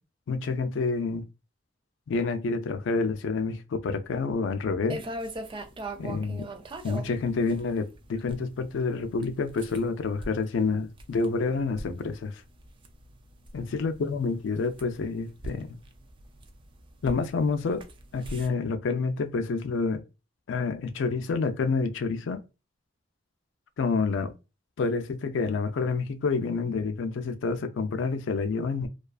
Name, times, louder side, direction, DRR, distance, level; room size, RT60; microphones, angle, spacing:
voice 1, 0.3-1.2 2.1-5.0 6.0-6.5 6.8-12.3 13.5-15.8 17.0-17.8 18.1-20.0 20.5-22.4 23.8-24.3 24.8-28.9, left 4 dB, 80° left, 0.4 m, -28 dB
sound 1, 4.9-18.5, right 1 dB, 25° right, 0.3 m, -42 dB
2.4 x 2.3 x 2.3 m
head